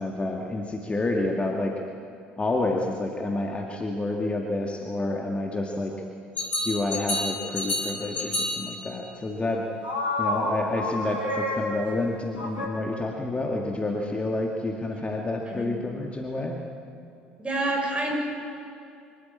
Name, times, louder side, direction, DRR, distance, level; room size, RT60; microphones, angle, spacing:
voice 1, 0.0-1.7 2.4-5.9 6.6-9.7 10.2-16.6, left 2 dB, 20° left, 1 dB, 2.0 m, -29 dB
sound 1, 6.4-8.8 9.8-12.0 12.4-12.7, left 1 dB, 80° left, 3.0 m, -29 dB
voice 2, 17.4-18.1, right 2 dB, 20° right, 0 dB, 6.5 m, -28 dB
24.5 x 13.0 x 8.7 m, 2.6 s
figure-of-eight pair, 55°, 6 cm